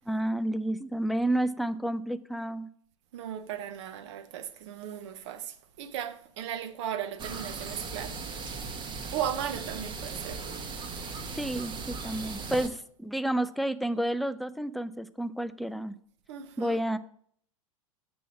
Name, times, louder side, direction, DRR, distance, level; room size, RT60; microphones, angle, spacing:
voice 1, 0.1-2.7 11.4-16.0 16.6-17.0, right 1 dB, ahead, 0.4 m, -30 dB
voice 2, 3.1-8.2 9.1-10.4 11.0-11.4 16.3-16.8, right 10 dB, 55° right, 0.9 m, -37 dB
sound 1, 7.2-12.7, right 4 dB, 25° right, 1.0 m, -38 dB
7.1 x 6.9 x 6.1 m
figure-of-eight pair, 90°, 18 cm